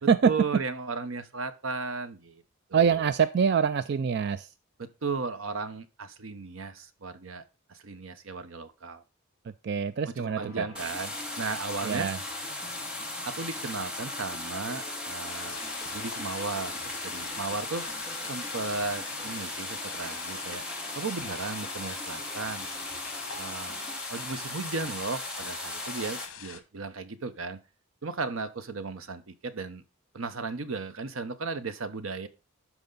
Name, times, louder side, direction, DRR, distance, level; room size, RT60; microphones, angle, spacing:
voice 1, 0.2-2.4 2.7-3.1 4.8-7.4 7.7-9.0 10.1-12.1 13.2-15.6 15.9-17.8 18.3-20.6 20.9-22.7 23.4-23.8 24.1-27.6 28.0-29.8 30.1-32.3, right 4 dB, 75° right, 11 dB, 0.9 m, -35 dB
voice 2, 2.7-4.5 9.6-10.7 11.8-12.2, right 6 dB, 50° right, 14 dB, 0.3 m, -24 dB
sound 1, 10.2-24.0, left 1 dB, 20° right, 2.9 m, -48 dB
sound 2, 10.8-26.3, left 1 dB, 5° right, 1.5 m, -37 dB
sound 3, 15.2-26.6, left 8 dB, 70° left, 1.2 m, -44 dB
12.0 x 4.8 x 3.9 m, 0.30 s
head